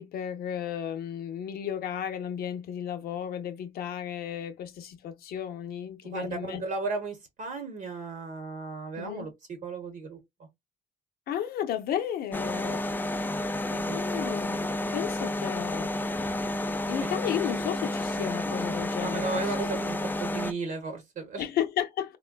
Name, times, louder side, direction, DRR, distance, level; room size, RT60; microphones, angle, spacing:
voice 1, 0.0-6.6 9.0-9.3 11.3-12.9 13.9-14.7 14.9-15.9 16.9-19.5 21.4-22.2, left 9 dB, 65° left, 0.6 m, -33 dB
voice 2, 6.1-10.2 13.7-14.0 17.0-17.1 19.0-21.4, right 4 dB, 50° right, 0.9 m, -35 dB
sound 1, 12.3-20.5, left 1 dB, 10° left, 0.3 m, -30 dB
3.6 x 2.2 x 2.2 m
cardioid pair, 110°, 17 cm